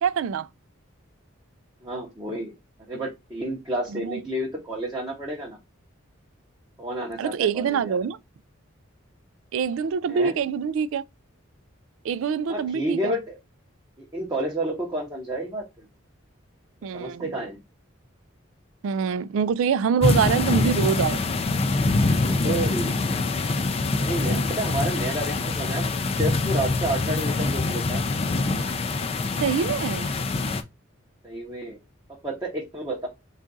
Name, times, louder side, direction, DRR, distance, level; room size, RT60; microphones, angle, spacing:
voice 1, 0.0-0.5 3.9-4.2 7.2-8.2 9.5-11.0 12.0-13.1 16.8-17.3 18.8-21.2 29.4-30.1, right 7 dB, 75° right, 0.3 m, -25 dB
voice 2, 1.8-2.5 2.9-5.6 6.8-8.0 10.1-10.3 12.5-13.4 14.0-15.9 16.9-17.6 22.2-23.0 24.0-28.0 31.2-31.8 32.2-33.1, right 1 dB, 15° right, 0.7 m, -30 dB
sound 1, 20.0-30.6, left 3 dB, 30° left, 0.3 m, -24 dB
3.8 x 2.4 x 3.8 m
head